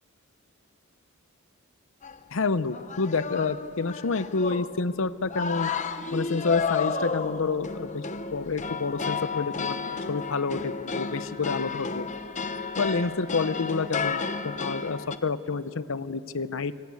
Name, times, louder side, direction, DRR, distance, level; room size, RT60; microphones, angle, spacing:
sound 1, 2.0-2.2 2.7-4.9 5.3-15.2, left 5 dB, 35° left, 0.8 m, -32 dB
voice 1, 2.3-5.7 6.1-8.0 8.3-12.1 12.8-16.7, left 4 dB, 65° left, 14 dB, 0.7 m, -28 dB
25.5 x 20.5 x 8.3 m, 2.8 s
head